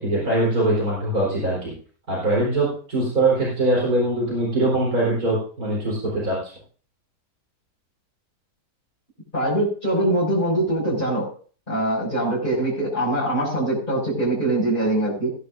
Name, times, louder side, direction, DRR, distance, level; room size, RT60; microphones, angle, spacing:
voice 1, 0.0-1.7 2.1-6.5, right 2 dB, 75° right, -5 dB, 4.8 m, -22 dB
voice 2, 9.3-11.3 11.7-15.3, right 1 dB, 30° left, -8 dB, 6.8 m, -23 dB
20.5 x 11.0 x 2.6 m, 0.41 s
omnidirectional pair, 1.6 m